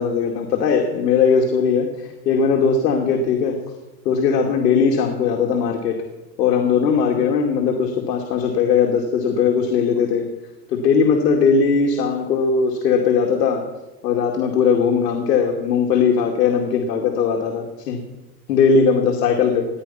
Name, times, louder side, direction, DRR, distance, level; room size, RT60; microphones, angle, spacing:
voice 1, 0.0-3.6 4.0-6.0 6.4-10.3 10.7-13.6 14.0-18.0 18.5-19.7, left 6 dB, 75° left, 2 dB, 2.6 m, -19 dB
19.0 x 10.5 x 5.8 m, 1.1 s
supercardioid pair, 165°, 49 cm